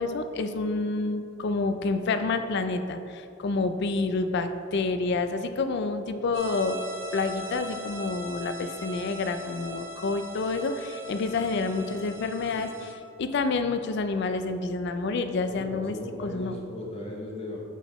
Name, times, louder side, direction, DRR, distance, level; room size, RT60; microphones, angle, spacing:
voice 1, 0.0-6.8 7.1-12.9 13.2-16.0 16.2-16.6, left 3 dB, 55° left, 9 dB, 0.4 m, -28 dB
sound 1, 6.3-12.9, right 2 dB, 70° right, 0.9 m, -40 dB
voice 2, 15.5-17.6, left 1 dB, 30° left, -2 dB, 0.9 m, -38 dB
8.1 x 3.9 x 3.0 m, 2.6 s
head